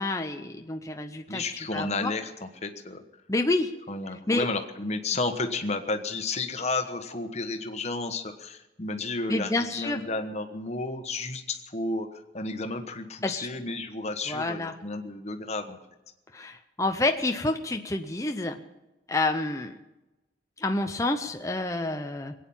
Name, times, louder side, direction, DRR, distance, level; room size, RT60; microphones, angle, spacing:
voice 1, 0.0-1.4 1.7-2.1 3.3-3.7 4.3-4.5 9.3-10.0 13.2-13.5 14.3-14.7 16.3-18.6 19.1-19.8 20.6-22.3, left 2 dB, 15° left, 5 dB, 0.6 m, -28 dB
voice 2, 1.3-3.0 3.9-15.8, left 3 dB, 35° left, 6 dB, 1.3 m, -32 dB
21.5 x 9.2 x 7.2 m, 1.0 s
head